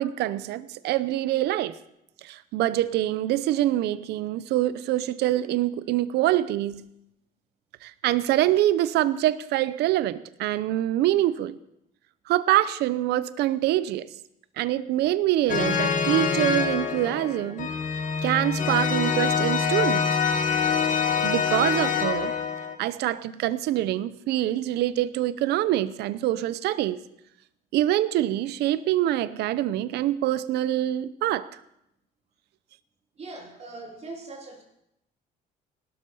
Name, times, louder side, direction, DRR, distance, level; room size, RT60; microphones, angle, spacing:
voice 1, 0.0-1.8 2.2-6.8 7.8-11.6 12.3-14.1 14.6-17.7 18.2-20.1 21.2-22.3 22.8-27.0 27.7-31.5, right 13 dB, 80° right, 16 dB, 0.7 m, -25 dB
sound 1, 15.5-22.8, left 6 dB, 50° left, 1.8 m, -25 dB
voice 2, 33.2-34.6, right 2 dB, 40° right, 1 dB, 3.5 m, -40 dB
18.5 x 12.5 x 5.5 m, 0.81 s
cardioid pair, 110°, 17 cm